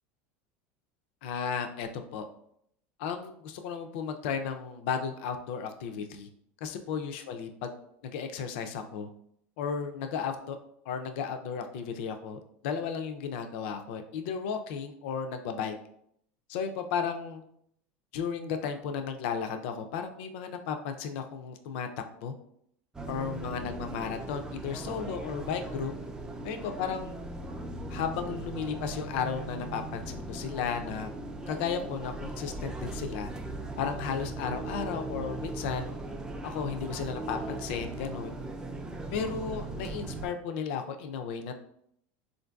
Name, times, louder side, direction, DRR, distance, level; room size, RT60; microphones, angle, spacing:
voice 1, 1.2-2.3 3.0-6.3 6.6-7.7 8.0-9.1 9.6-10.6 10.9-15.7 16.5-17.4 18.1-21.9 22.2-22.3 23.1-25.9 26.4-27.1 27.9-31.1 31.5-33.3 33.8-35.9 36.4-38.4 39.1-41.5, left 6 dB, 70° left, 6 dB, 0.4 m, -34 dB
sound 1, 22.9-40.3, right 2 dB, 10° right, 0.3 m, -39 dB
3.7 x 2.5 x 2.2 m, 0.70 s
supercardioid pair, 125°, 6 cm